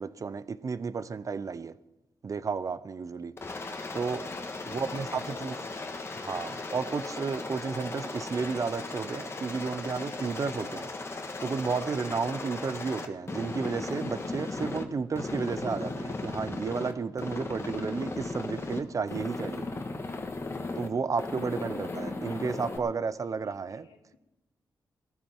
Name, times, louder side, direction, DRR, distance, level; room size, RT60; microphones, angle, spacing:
voice 1, 0.0-1.7 2.2-3.3 3.9-4.3 4.7-5.5 6.2-10.9 11.4-19.7 20.8-23.9, right 5 dB, 45° right, 0.6 m, -32 dB
Aircraft, 3.4-14.8 15.2-16.9 17.2-18.8 19.1-20.9 21.2-22.8, left 3 dB, 30° left, 1.6 m, -36 dB
voice 2, 4.3-5.8 23.4-24.2, left 6 dB, 90° left, 1.8 m, -52 dB
19.0 x 13.5 x 4.5 m
cardioid pair, 95°, 8 cm